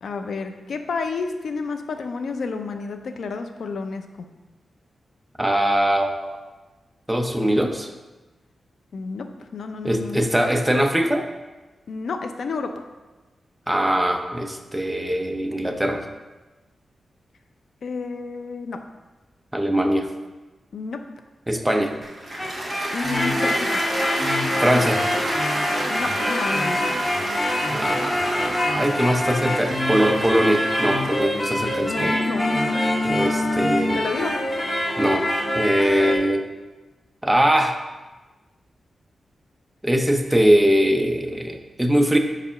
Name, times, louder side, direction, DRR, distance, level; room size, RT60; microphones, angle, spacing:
voice 1, 0.0-4.3 8.9-9.3 9.5-10.3 11.9-12.7 17.8-18.8 20.7-21.0 22.9-23.8 25.9-26.8 31.8-32.8 33.9-34.3, left 4 dB, 70° left, 7 dB, 0.6 m, -30 dB
voice 2, 5.4-6.4 7.1-7.9 9.8-11.3 13.7-16.0 19.5-20.1 21.5-21.9 24.6-25.0 27.7-32.1 33.0-34.0 35.0-35.2 35.5-36.4 37.2-37.7 39.8-42.2, equal, 10° right, 4 dB, 0.6 m, -21 dB
Cheering / Applause, 22.0-34.2, right 1 dB, 25° right, 1.9 m, -30 dB
sound 1, 22.2-36.2, left 1 dB, 20° left, 1.0 m, -25 dB
4.9 x 4.8 x 5.6 m, 1.2 s
wide cardioid pair, 110°, 0 cm